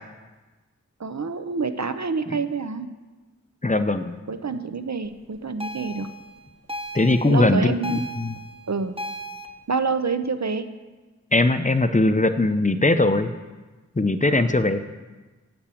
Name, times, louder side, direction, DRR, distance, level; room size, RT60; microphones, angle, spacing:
voice 1, 1.0-2.9 4.3-6.1 7.3-8.0 8.7-9.0 9.7-10.7 14.2-14.5, right 4 dB, 70° right, 10 dB, 0.7 m, -27 dB
voice 2, 3.6-4.2 6.9-8.4 11.3-13.3 14.0-14.8, left 2 dB, 25° left, 9 dB, 0.6 m, -20 dB
sound 1, 5.6-9.5, right 1 dB, 20° right, 0.8 m, -36 dB
8.7 x 6.1 x 8.4 m, 1.2 s
wide cardioid pair, 45°, 29 cm